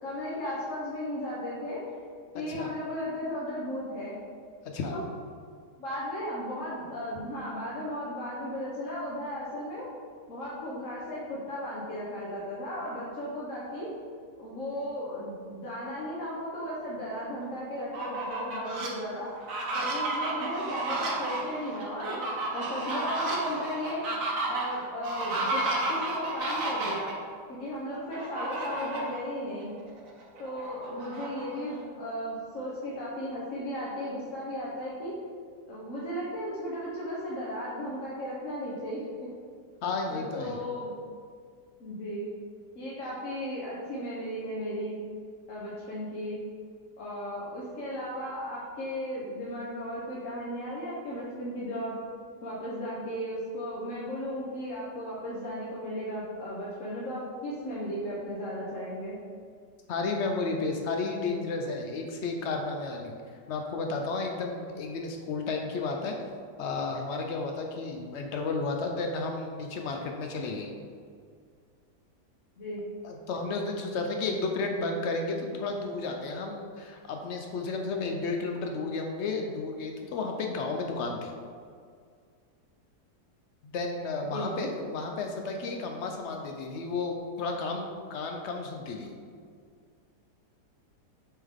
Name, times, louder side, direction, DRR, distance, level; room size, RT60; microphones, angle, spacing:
voice 1, 0.0-1.8 2.3-4.2 4.9-5.0 5.8-9.8 10.3-13.9 14.4-19.3 19.7-24.0 24.4-27.1 27.5-29.7 30.4-35.1 35.7-39.3 40.1-40.9 41.8-42.3 42.7-44.9 45.5-46.4 47.0-51.9 52.4-59.1 72.6-72.8 84.2-84.7, equal, 55° left, -6 dB, 1.1 m, -35 dB
voice 2, 2.3-2.8 4.6-5.0 39.8-40.6 59.9-63.1 63.5-66.1 66.6-70.7 73.0-81.3 83.7-89.1, left 3 dB, 85° left, 2 dB, 0.6 m, -32 dB
Fowl, 17.8-18.9 19.4-27.1 28.1-29.2 29.6-29.7 30.1-31.8, right 2 dB, 55° right, 1.2 m, -32 dB
7.3 x 3.6 x 3.5 m, 2.1 s
omnidirectional pair, 1.8 m